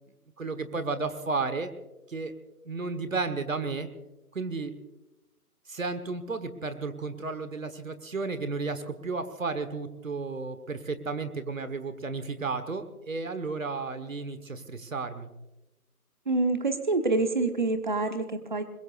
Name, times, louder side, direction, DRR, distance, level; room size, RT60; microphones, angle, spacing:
voice 1, 0.4-1.7 2.1-2.3 2.6-3.9 4.3-4.7 5.7-15.3, right 4 dB, 60° right, 10 dB, 1.4 m, -33 dB
voice 2, 16.3-18.6, right 3 dB, 30° right, 8 dB, 1.1 m, -26 dB
26.5 x 21.5 x 2.5 m, 1.0 s
figure-of-eight pair, 170°, 45 cm